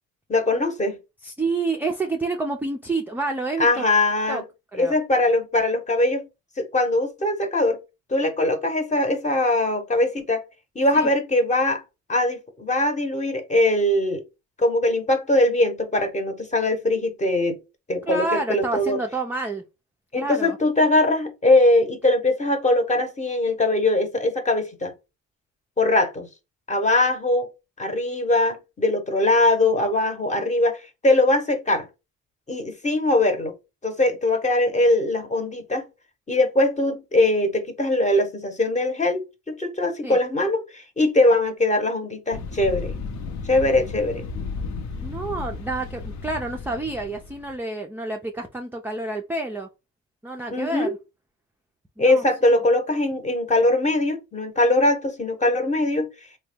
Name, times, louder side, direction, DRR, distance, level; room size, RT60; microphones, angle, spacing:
voice 1, 0.3-1.0 3.6-4.4 4.7-6.3 6.6-7.8 8.1-10.4 10.7-11.8 12.1-14.2 14.6-17.6 17.9-19.0 20.1-24.9 25.8-26.3 26.7-27.5 27.8-31.9 32.5-33.5 33.8-35.8 36.3-43.0 43.4-44.3 50.5-50.9 52.0-56.1, left 2 dB, 25° left, 0.8 m, -21 dB
voice 2, 1.2-3.8 4.3-4.4 4.7-4.9 10.9-11.1 18.0-19.6 20.2-20.6 40.0-40.2 45.0-49.7 50.2-50.9 52.0-52.6, right 3 dB, 5° right, 0.3 m, -29 dB
sound 1, 42.3-47.6, left 4 dB, 65° left, 0.7 m, -34 dB
3.3 x 2.2 x 3.3 m
cardioid pair, 125°, 31 cm